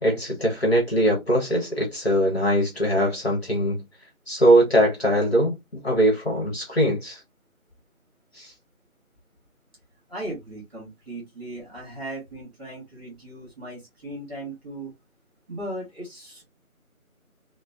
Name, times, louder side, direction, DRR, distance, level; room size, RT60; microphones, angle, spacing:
voice 1, 0.0-3.8 4.3-5.6 5.8-7.2 8.3-8.5, equal, 45° left, 1.1 m, -21 dB
voice 2, 10.1-14.9 15.5-16.4, right 1 dB, 20° right, 1.4 m, -37 dB
3.2 x 2.0 x 2.4 m
figure-of-eight pair, 165°, 43 cm